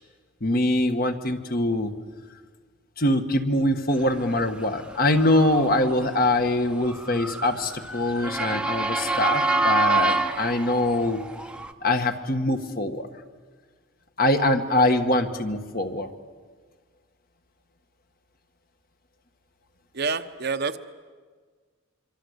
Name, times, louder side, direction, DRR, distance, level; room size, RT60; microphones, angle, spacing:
voice 1, 0.4-1.9 3.0-11.2 11.8-13.1 14.2-16.1, left 1 dB, 45° left, 7 dB, 1.5 m, -23 dB
Motor vehicle (road) / Siren, 4.4-11.7, right 3 dB, 5° right, 0.9 m, -27 dB
voice 2, 19.9-20.8, right 4 dB, 50° right, 9 dB, 1.0 m, -27 dB
25.0 x 25.0 x 8.1 m, 1.6 s
head